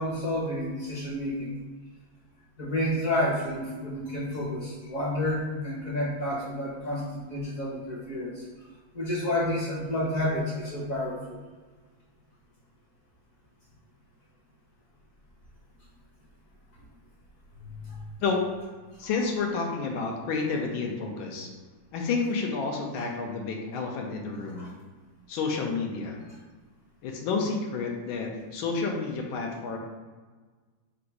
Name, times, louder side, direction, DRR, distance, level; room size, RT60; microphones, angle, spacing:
voice 1, 0.0-1.5 2.6-8.4 8.9-11.2 17.6-18.1 24.6-24.7, left 1 dB, 50° left, -7 dB, 1.2 m, -30 dB
voice 2, 19.0-21.5 21.9-24.7 25.3-26.2 27.0-29.8, left 4 dB, 85° left, 1 dB, 1.5 m, -30 dB
3.8 x 2.6 x 4.5 m, 1.4 s
omnidirectional pair, 2.2 m